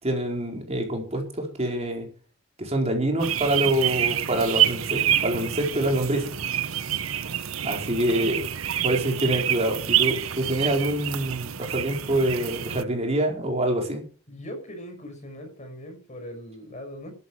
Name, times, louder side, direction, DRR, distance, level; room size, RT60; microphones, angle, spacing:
voice 1, 0.0-2.1 2.6-6.3 7.6-8.4 8.8-14.0, right 1 dB, 30° right, 2 dB, 4.6 m, -26 dB
sound 1, 3.2-12.8, right 10 dB, 80° right, 0.9 m, -27 dB
voice 2, 7.5-7.9 8.8-8.9 14.3-17.1, equal, 35° left, 5 dB, 6.0 m, -40 dB
12.5 x 12.0 x 6.4 m, 0.40 s
head